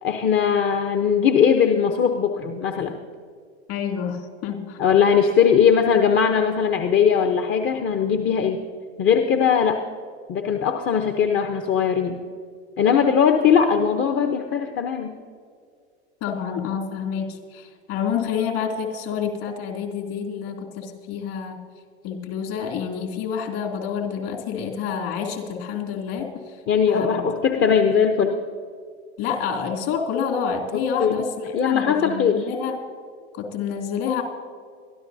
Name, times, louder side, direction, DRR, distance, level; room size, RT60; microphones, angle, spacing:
voice 1, 0.0-3.0 4.8-8.6 9.0-9.8 10.3-12.2 12.8-15.1 26.7-28.4 30.7-31.2 31.5-32.4, left 7 dB, 35° left, 6 dB, 0.9 m, -20 dB
voice 2, 3.7-4.8 16.2-21.6 22.0-26.3 26.9-27.3 29.2-32.8 33.3-34.2, left 7 dB, 55° left, 1 dB, 2.9 m, -28 dB
22.5 x 13.0 x 2.7 m, 2.1 s
hypercardioid pair, 90°, 34 cm